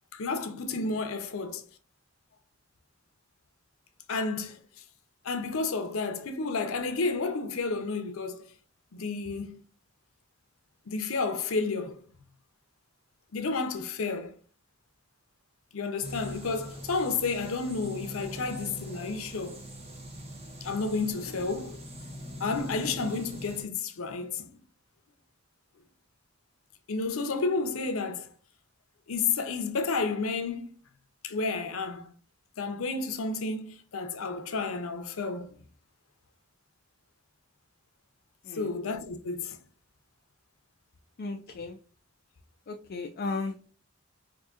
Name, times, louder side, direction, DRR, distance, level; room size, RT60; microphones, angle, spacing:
voice 1, 0.1-1.7 4.1-4.6 5.2-8.4 8.9-9.6 10.9-12.0 13.3-14.3 15.7-19.6 20.6-21.8 22.4-24.5 26.9-28.3 29.1-30.7 31.2-32.1 32.6-35.5 38.5-39.6, left 4 dB, 90° left, 0.6 m, -31 dB
sound 1, 16.0-23.6, equal, 30° right, 0.8 m, -42 dB
voice 2, 41.2-41.8 42.7-43.6, left 3 dB, 50° left, 0.4 m, -35 dB
4.8 x 2.6 x 2.4 m
head